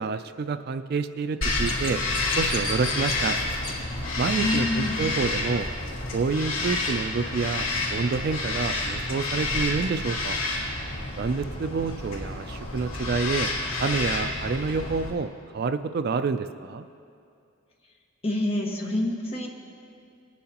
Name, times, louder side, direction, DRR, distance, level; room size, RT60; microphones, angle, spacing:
voice 1, 0.0-2.0 2.4-3.4 4.2-5.7 6.1-10.4 11.2-13.5 13.8-16.8, right 4 dB, 50° right, 10 dB, 0.3 m, -28 dB
Bird vocalization bird call bird song, 1.4-15.1, left 2 dB, 80° left, 3.3 m, -29 dB
voice 2, 4.3-5.1 18.2-19.5, left 1 dB, 30° left, -2 dB, 1.4 m, -27 dB
20.5 x 10.5 x 2.9 m, 2.4 s
head